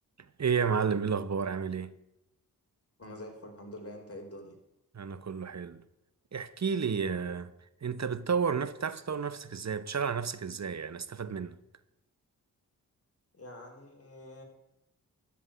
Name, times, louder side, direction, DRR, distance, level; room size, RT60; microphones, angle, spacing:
voice 1, 0.4-2.0 4.9-5.8 6.3-7.5 7.8-11.6, right 6 dB, 45° right, 0.9 m, -31 dB
voice 2, 3.0-4.5 13.3-14.4, left 1 dB, 40° left, 4.1 m, -46 dB
12.5 x 5.3 x 8.9 m
cardioid pair, 40°, 37 cm